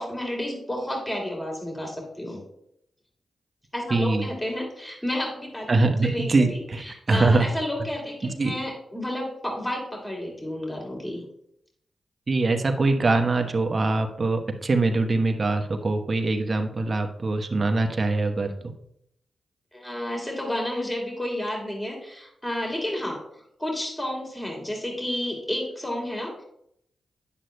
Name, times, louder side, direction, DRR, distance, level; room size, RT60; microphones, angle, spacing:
voice 1, 0.0-2.4 3.7-5.7 6.0-11.2 19.7-26.4, left 1 dB, 15° left, 0 dB, 2.8 m, -31 dB
voice 2, 3.9-4.2 5.7-7.5 8.2-8.5 12.3-18.7, right 3 dB, 45° right, 5 dB, 1.0 m, -23 dB
9.8 x 7.7 x 2.2 m, 0.75 s
supercardioid pair, 45°, 0 cm